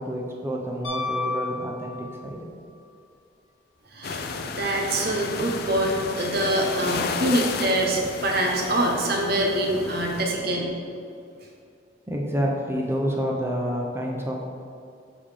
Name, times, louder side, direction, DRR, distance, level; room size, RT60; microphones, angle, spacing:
voice 1, 0.0-2.5 10.1-10.7 11.1-11.2 12.1-14.5, equal, 15° right, -1 dB, 0.7 m, -29 dB
Piano, 0.8-2.4 4.8-4.9, left 3 dB, 75° left, 1.2 m, -31 dB
voice 2, 3.9-10.7, right 1 dB, 55° right, 0 dB, 0.9 m, -25 dB
sound 1, 4.0-10.3, left 4 dB, 55° left, 0.4 m, -32 dB
6.9 x 3.7 x 4.9 m, 2.3 s
head